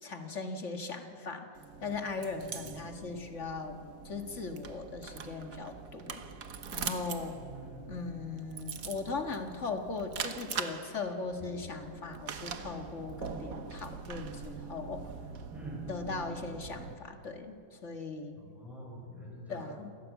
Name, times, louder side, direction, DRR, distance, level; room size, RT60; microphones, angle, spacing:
voice 1, 0.0-1.5 1.8-6.3 6.7-7.4 7.9-15.0 15.9-18.4 19.5-19.9, left 4 dB, 40° left, 5 dB, 1.9 m, -39 dB
sound 1, 1.6-16.9, right 6 dB, 55° right, 1.5 m, -43 dB
voice 2, 7.3-8.0 15.5-15.9 18.4-19.7, right 1 dB, ahead, -2 dB, 5.5 m, -46 dB
28.0 x 15.5 x 8.3 m, 2.6 s
omnidirectional pair, 1.9 m